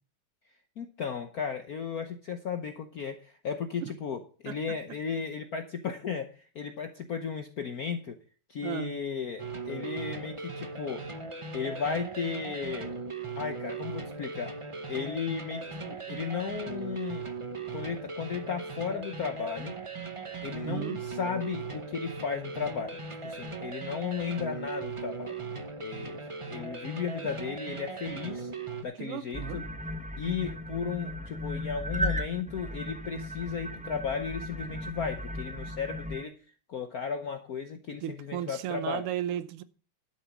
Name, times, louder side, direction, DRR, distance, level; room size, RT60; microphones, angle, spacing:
voice 1, 0.8-8.2 8.5-11.0 11.5-13.0 13.4-14.5 14.9-17.3 17.7-19.8 20.1-25.4 25.8-26.2 26.5-28.5 28.8-29.6 30.2-36.3 36.7-39.1, left 6 dB, 55° left, 1.2 m, -35 dB
voice 2, 8.6-9.0 20.7-21.0 29.0-29.7 38.0-39.6, right 11 dB, 90° right, 1.8 m, -34 dB
sound 1, 9.4-28.8, right 4 dB, 50° right, 0.3 m, -38 dB
sound 2, 29.3-36.2, equal, 5° right, 0.6 m, -36 dB
12.0 x 7.3 x 6.0 m
omnidirectional pair, 2.4 m